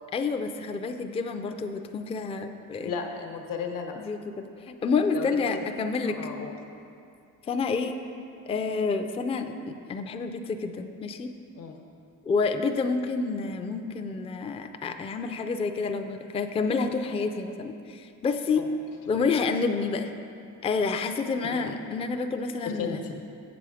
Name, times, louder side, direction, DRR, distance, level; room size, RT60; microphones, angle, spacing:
voice 1, 0.1-2.9 4.0-6.2 7.5-8.0 8.5-11.3 12.3-18.6 19.1-20.1 20.6-23.0, left 4 dB, 20° left, 6 dB, 0.3 m, -29 dB
voice 2, 2.8-3.9 5.1-5.4 6.1-6.5 11.6-11.8 18.6-18.7 19.1-19.3 21.5-21.7 22.8-23.2, left 6 dB, 75° left, 3 dB, 1.0 m, -35 dB
7.4 x 7.0 x 4.8 m, 2.6 s
cardioid pair, 110°, 33 cm